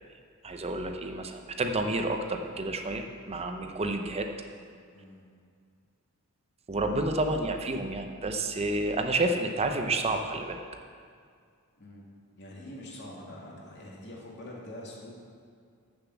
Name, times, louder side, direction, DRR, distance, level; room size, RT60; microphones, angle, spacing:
voice 1, 0.4-4.3 6.7-10.6, right 2 dB, 30° right, 5 dB, 0.6 m, -30 dB
voice 2, 4.9-5.2 11.8-12.0 12.3-15.2, left 1 dB, 55° left, -3 dB, 2.1 m, -44 dB
8.1 x 6.7 x 7.1 m, 2.2 s
head